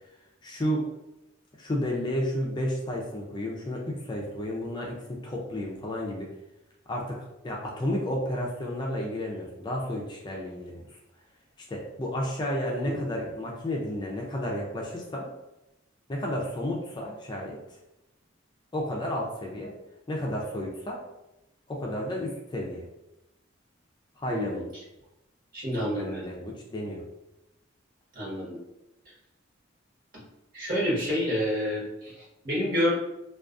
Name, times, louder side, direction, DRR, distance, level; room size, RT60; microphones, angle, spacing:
voice 1, 0.4-0.8 1.6-6.3 6.9-10.9 11.7-15.3 16.1-17.6 18.7-19.7 20.1-21.0 21.7-22.8 24.2-24.6 25.8-27.0, left 1 dB, 25° left, -2 dB, 0.4 m, -32 dB
voice 2, 24.3-24.6 25.5-26.3 28.1-28.6 30.5-32.9, equal, 50° right, -7 dB, 1.1 m, -28 dB
2.3 x 2.3 x 2.4 m, 0.91 s
head